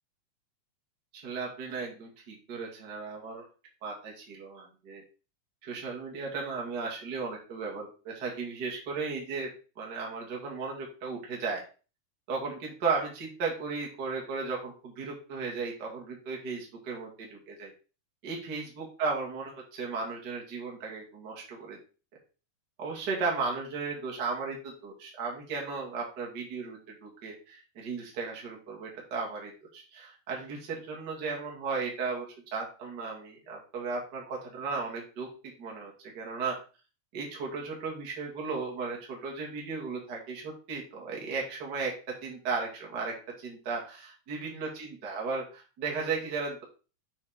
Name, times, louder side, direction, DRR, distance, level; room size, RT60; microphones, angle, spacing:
voice 1, 1.1-3.4 3.8-5.0 5.6-9.5 9.8-11.6 12.3-17.7 18.2-21.8 22.8-32.3 32.5-35.3 35.6-36.6 37.1-41.9 42.2-46.6, right 4 dB, 35° right, -1 dB, 2.2 m, -35 dB
7.1 x 4.8 x 4.8 m, 0.35 s
omnidirectional pair, 3.7 m